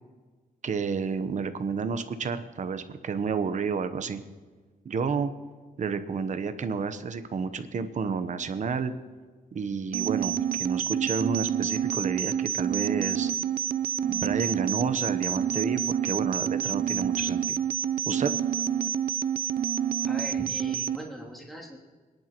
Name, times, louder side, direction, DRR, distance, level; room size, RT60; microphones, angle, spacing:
voice 1, 0.6-4.2 4.8-5.3 5.8-8.9 9.5-13.3 14.0-17.6 18.1-18.3, right 5 dB, 55° right, 10 dB, 1.0 m, -30 dB
sound 1, 9.9-21.0, right 9 dB, 75° right, 0.6 m, -28 dB
voice 2, 20.0-21.8, equal, ahead, -3 dB, 2.9 m, -40 dB
25.0 x 10.5 x 3.0 m, 1.4 s
cardioid pair, 110°, 16 cm